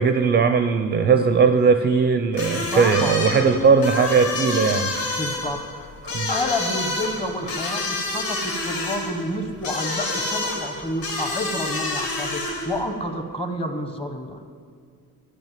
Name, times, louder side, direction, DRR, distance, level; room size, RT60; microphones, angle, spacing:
voice 1, 0.0-4.9 6.1-6.3, right 5 dB, 30° right, 9 dB, 0.4 m, -18 dB
sound 1, 2.3-12.8, left 2 dB, 85° left, 3.8 m, -28 dB
voice 2, 2.7-3.2 5.0-7.8 8.1-14.4, left 1 dB, 15° left, 6 dB, 0.9 m, -29 dB
14.0 x 5.4 x 9.1 m, 2.2 s
cardioid pair, 175°, 35 cm